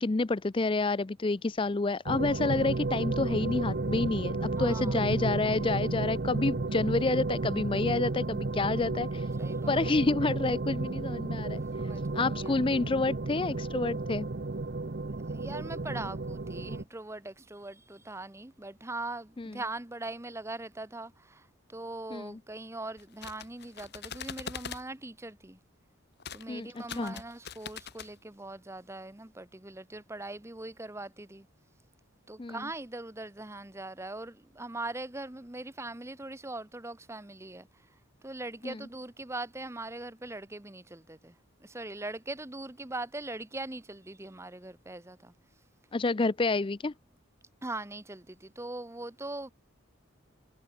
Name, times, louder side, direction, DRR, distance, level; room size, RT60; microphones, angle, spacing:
voice 1, 0.0-9.3 9.7-11.6 12.1-14.3 19.4-19.6 22.1-22.4 26.5-27.2 32.4-32.7 38.6-38.8 45.9-46.9, left 3 dB, 25° left, 0.4 m, -29 dB
sound 1, 2.0-16.8, right 3 dB, 50° right, 0.7 m, -32 dB
voice 2, 4.6-5.0 9.4-9.8 11.8-12.6 15.3-25.6 26.3-31.5 32.3-37.7 38.2-41.4 41.6-45.3 47.6-49.5, right 2 dB, 15° right, 0.9 m, -41 dB
sound 2, 23.0-24.8 26.2-26.4 26.8-28.1, left 6 dB, 50° left, 2.0 m, -42 dB
head